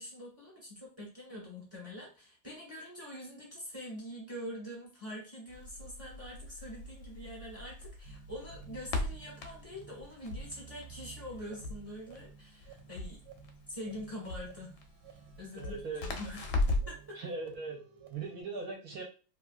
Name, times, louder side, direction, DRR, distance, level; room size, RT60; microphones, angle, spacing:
voice 1, 0.0-13.2 13.7-14.8 15.1-17.2, equal, 10° right, -3 dB, 0.8 m, -45 dB
Crackle, 5.5-17.0, left 2 dB, 75° left, 1.1 m, -38 dB
sound 1, 8.0-18.4, right 6 dB, 90° right, 1.3 m, -55 dB
voice 2, 15.6-16.1 17.2-17.8 18.1-19.0, right 4 dB, 65° right, 0 dB, 1.1 m, -39 dB
3.0 x 2.5 x 2.3 m, 0.35 s
omnidirectional pair, 1.9 m